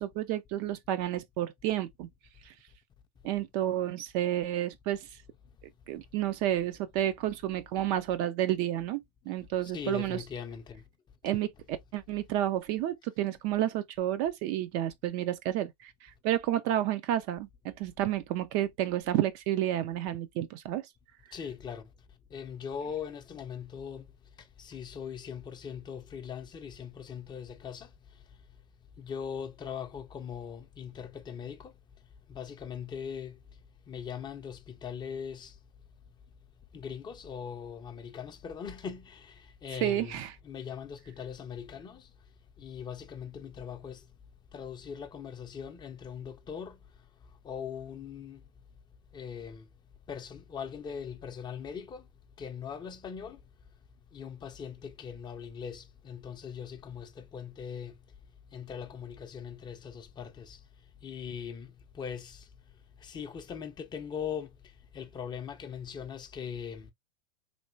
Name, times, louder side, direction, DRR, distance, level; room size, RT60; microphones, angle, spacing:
voice 1, 0.0-2.1 2.5-2.6 3.2-5.1 5.9-10.2 11.2-20.9 39.8-40.3, right 12 dB, 45° right, 0.4 m, -31 dB
voice 2, 9.6-10.9 21.3-21.9 22.3-24.1 24.4-28.5 29.0-33.4 33.9-35.6 36.7-42.1 42.6-44.1 44.5-48.4 49.1-49.7 50.1-52.1 52.4-53.4 54.1-58.1 58.5-66.9, left 7 dB, 20° left, 0.6 m, -41 dB
3.2 x 2.9 x 2.6 m
hypercardioid pair, 100°, 21 cm